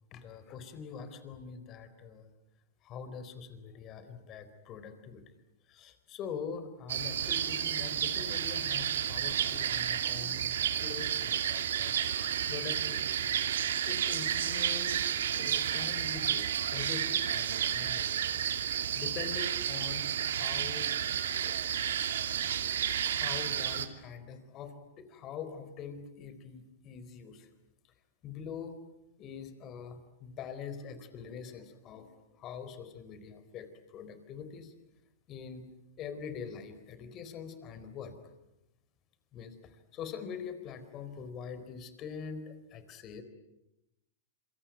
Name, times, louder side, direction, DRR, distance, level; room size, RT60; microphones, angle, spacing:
voice 1, 0.1-2.3 2.8-5.2 5.7-10.5 10.8-13.3 13.9-18.4 18.7-20.9 21.4-21.5 23.0-27.5 28.2-28.8 29.2-33.7 33.9-34.7 35.3-35.7 36.0-38.1 39.3-39.5 39.9-43.2, left 6 dB, 35° left, 11 dB, 4.3 m, -44 dB
sound 1, 6.9-23.9, right 9 dB, 80° right, 2.4 m, -31 dB
27.0 x 23.5 x 9.2 m, 0.92 s
hypercardioid pair, 125°, 0 cm